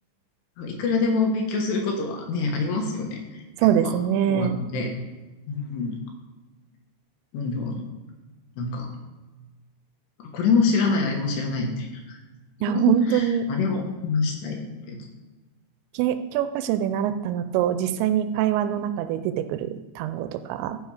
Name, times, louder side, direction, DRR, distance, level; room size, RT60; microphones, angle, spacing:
voice 1, 0.6-3.4 3.8-3.9 4.3-4.9 5.5-6.0 7.3-7.9 8.6-8.9 10.3-12.2 12.7-14.6 14.9-15.1, left 4 dB, 70° left, 2 dB, 3.4 m, -26 dB
voice 2, 3.6-4.6 12.6-13.5 15.9-20.8, right 10 dB, 85° right, 10 dB, 2.7 m, -24 dB
14.0 x 5.2 x 4.9 m, 1.2 s
omnidirectional pair, 5.3 m